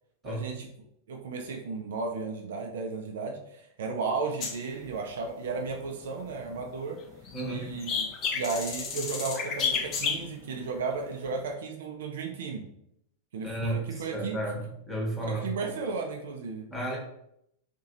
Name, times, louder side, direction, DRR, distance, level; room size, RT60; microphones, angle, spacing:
voice 1, 0.2-0.7 1.1-7.0 7.4-12.6 13.3-14.4 15.2-16.7, right 4 dB, 60° right, 3 dB, 0.4 m, -34 dB
sound 1, 4.4-6.6 7.0-10.6 11.2-11.4, left 5 dB, 35° left, 0.5 m, -32 dB
voice 2, 7.3-7.7 13.4-13.8 14.1-15.6 16.7-17.0, right 1 dB, 5° left, -3 dB, 1.0 m, -32 dB
2.8 x 2.6 x 2.6 m, 0.76 s
figure-of-eight pair, 90°, 0 cm